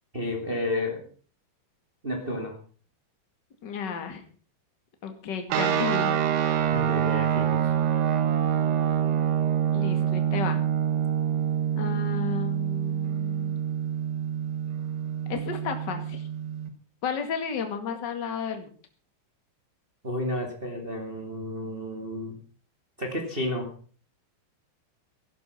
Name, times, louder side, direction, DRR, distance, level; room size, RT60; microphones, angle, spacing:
voice 1, 0.1-1.1 2.0-2.6 6.7-7.7 20.0-22.4 23.0-23.7, left 1 dB, 25° right, 2 dB, 1.1 m, -31 dB
voice 2, 3.6-4.2 5.0-6.2 9.7-10.6 11.7-13.5 15.3-16.3 17.0-18.7, left 6 dB, 40° left, 6 dB, 1.6 m, -33 dB
sound 1, 5.5-16.7, right 9 dB, 85° right, 3.8 m, -26 dB
15.5 x 11.5 x 5.8 m, 0.43 s
omnidirectional pair, 5.2 m